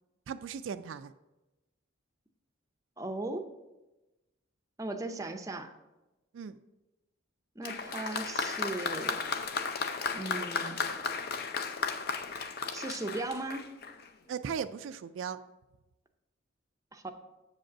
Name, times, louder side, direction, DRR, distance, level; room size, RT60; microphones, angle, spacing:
voice 1, 0.3-1.1 6.3-6.6 14.3-15.4, right 7 dB, 70° right, 11 dB, 0.3 m, -37 dB
voice 2, 3.0-3.5 4.8-5.7 7.6-9.2 10.1-10.8 12.7-13.7 16.9-17.1, right 2 dB, 15° right, 7 dB, 0.5 m, -37 dB
Applause, 7.6-14.1, left 5 dB, 50° left, 0.6 m, -34 dB
7.5 x 5.2 x 5.9 m, 1.0 s
head